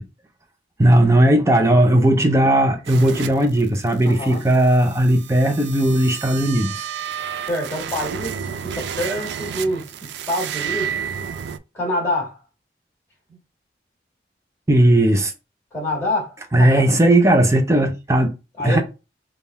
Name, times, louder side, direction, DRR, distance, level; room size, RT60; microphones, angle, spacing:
voice 1, 0.8-6.9 14.7-15.3 16.5-18.8, right 1 dB, 15° right, 0.5 m, -17 dB
sound 1, 2.8-11.6, right 8 dB, 80° right, 0.3 m, -31 dB
voice 2, 4.0-4.4 7.4-10.9 11.7-12.4 15.7-16.3 16.6-16.8 18.6-18.8, left 1 dB, 15° left, 1.6 m, -26 dB
3.6 x 2.3 x 4.0 m
head